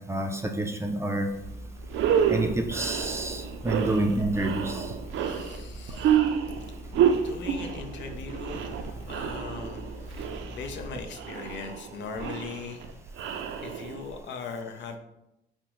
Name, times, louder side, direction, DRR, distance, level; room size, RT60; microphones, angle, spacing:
voice 1, 0.1-1.3 2.3-4.9, right 2 dB, 15° right, 3 dB, 0.4 m, -28 dB
Engine, 1.4-11.0, equal, 25° left, 0.9 m, -43 dB
sound 1, 1.4-1.5 1.8-14.2, right 8 dB, 75° right, 0.4 m, -29 dB
voice 2, 5.2-6.2 7.2-12.8 13.6-15.0, left 5 dB, 65° left, 5 dB, 0.5 m, -40 dB
4.9 x 2.1 x 3.0 m, 0.88 s
cardioid pair, 90°, 20 cm